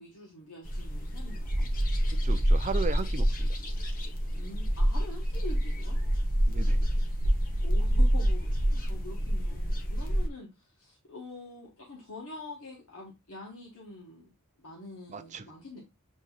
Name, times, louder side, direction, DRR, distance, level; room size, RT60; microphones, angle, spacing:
voice 1, 0.0-1.7 4.3-6.0 7.6-14.3 14.6-15.8, left 2 dB, 65° left, 1.2 m, -45 dB
sound 1, 0.6-10.3, equal, 40° left, 0.9 m, -27 dB
voice 2, 2.1-3.6 6.5-6.9 15.1-15.5, right 4 dB, 35° right, 0.4 m, -36 dB
7.5 x 2.7 x 2.3 m
head